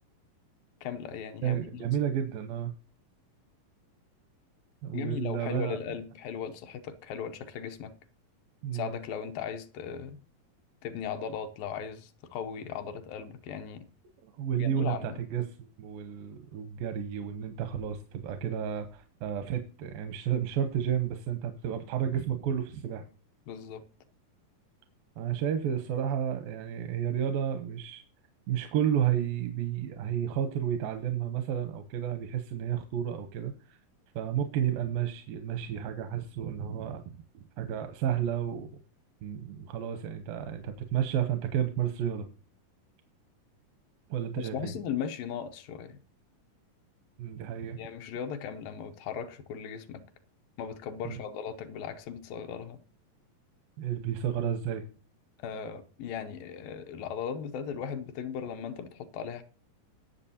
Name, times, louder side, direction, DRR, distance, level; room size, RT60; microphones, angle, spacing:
voice 1, 0.8-1.6 4.9-7.9 8.7-10.2 10.8-13.9 14.6-15.2 23.5-23.8 44.4-46.0 47.8-50.0 50.6-52.8 55.4-59.4, left 7 dB, 80° left, 2.5 m, -37 dB
voice 2, 1.4-2.7 4.8-5.8 8.6-8.9 14.2-23.0 25.2-28.0 28.5-33.8 34.2-37.0 37.6-38.7 39.2-42.3 44.1-44.7 47.2-47.8 51.1-51.2 53.8-54.8, right 9 dB, 85° right, 2.6 m, -31 dB
20.0 x 6.9 x 2.8 m
omnidirectional pair, 4.0 m